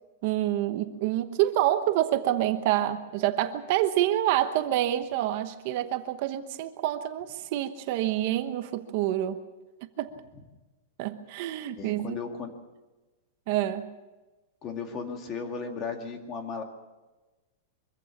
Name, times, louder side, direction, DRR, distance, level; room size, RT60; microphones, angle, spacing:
voice 1, 0.2-9.4 10.0-10.2 11.0-12.2 13.5-13.9, right 13 dB, 40° right, 9 dB, 1.0 m, -27 dB
voice 2, 11.8-12.5 14.6-16.6, left 5 dB, 25° left, 4 dB, 2.2 m, -35 dB
24.0 x 15.5 x 7.3 m, 1.2 s
supercardioid pair, 175°, 0 cm